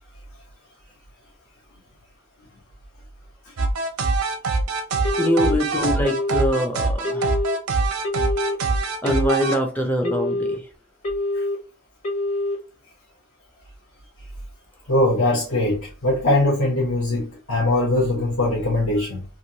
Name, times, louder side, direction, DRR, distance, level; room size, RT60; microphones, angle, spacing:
sound 1, 3.6-9.6, right 3 dB, 85° right, 0.6 m, -23 dB
Telephone, 5.0-5.6 6.0-6.6 7.0-7.6 8.0-8.6 9.0-9.6 10.0-10.6 11.0-11.6 12.0-12.6, left 2 dB, 30° left, 0.8 m, -25 dB
voice 1, 5.2-7.3 9.0-10.6, equal, 10° left, 0.4 m, -24 dB
voice 2, 14.9-19.2, left 1 dB, 70° left, 0.9 m, -21 dB
3.0 x 2.6 x 2.7 m
head